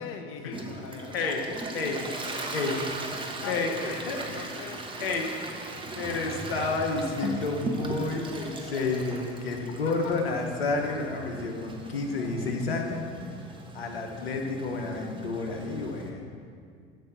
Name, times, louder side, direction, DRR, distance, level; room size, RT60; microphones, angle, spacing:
voice 1, 0.0-1.4 2.2-4.9 5.2-5.4 5.7-6.2, left 6 dB, 45° left, 5 dB, 1.0 m, -43 dB
Toilet flush, 0.5-16.1, right 2 dB, 15° right, 1.3 m, -38 dB
voice 2, 1.1-1.4 1.7-2.0 2.5-2.8 3.4-4.5 5.0-5.3 5.7-13.0 13.7-16.4, left 3 dB, 90° left, 2 dB, 1.2 m, -30 dB
8.0 x 6.0 x 6.8 m, 2.1 s
hypercardioid pair, 80°, 29 cm